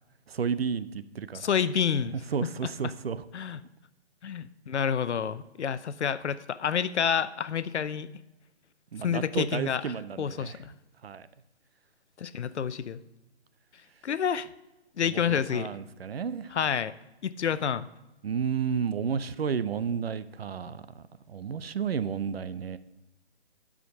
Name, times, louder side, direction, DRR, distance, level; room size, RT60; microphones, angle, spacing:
voice 1, 0.3-1.5 2.3-3.2 8.9-10.6 11.0-11.3 15.0-16.5 18.2-22.8, right 6 dB, 65° right, 15 dB, 0.6 m, -32 dB
voice 2, 1.3-2.1 3.3-3.6 4.2-8.1 9.0-10.7 12.2-13.0 14.0-14.5 15.0-15.7 16.5-16.9 17.2-17.9, left 7 dB, 90° left, 15 dB, 0.6 m, -29 dB
12.0 x 5.0 x 4.9 m, 0.99 s
hypercardioid pair, 170°, 33 cm